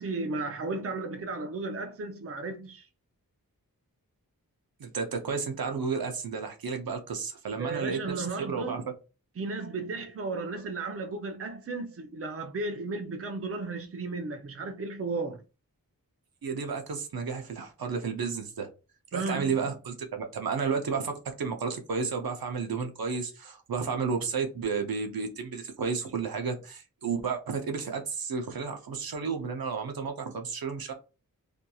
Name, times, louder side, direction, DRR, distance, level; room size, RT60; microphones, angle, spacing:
voice 1, 0.0-2.8 7.6-8.8 9.4-15.4 19.1-19.6, right 3 dB, 40° right, 0.5 m, -34 dB
voice 2, 4.8-8.8 16.4-18.7 19.1-30.9, right 5 dB, 80° right, 0.7 m, -32 dB
2.7 x 2.6 x 2.3 m
cardioid pair, 40°, 36 cm